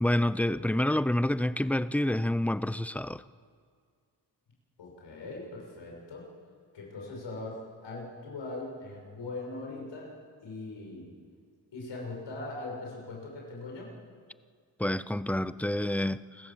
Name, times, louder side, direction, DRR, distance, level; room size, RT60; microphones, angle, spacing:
voice 1, 0.0-3.2 14.8-16.5, left 1 dB, 5° left, 16 dB, 0.4 m, -28 dB
voice 2, 4.8-6.3 6.7-10.1 10.4-11.1 11.7-13.9, left 2 dB, 85° left, -1 dB, 6.3 m, -40 dB
28.0 x 15.5 x 7.2 m, 2.1 s
cardioid pair, 95°, 43 cm